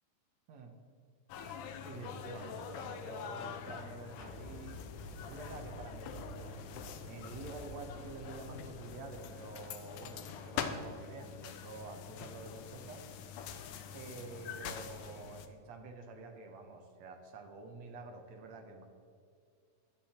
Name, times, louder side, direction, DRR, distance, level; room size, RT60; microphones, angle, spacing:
sound 1, 1.3-15.5, left 7 dB, 75° left, 2.1 m, -45 dB
voice 1, 1.8-4.8 5.2-6.6 7.1-13.0 13.9-18.8, right 3 dB, 60° right, 4 dB, 2.1 m, -48 dB
sound 2, 3.8-10.1, right 1 dB, ahead, 0.9 m, -51 dB
15.5 x 11.0 x 4.4 m, 2.3 s
omnidirectional pair, 4.2 m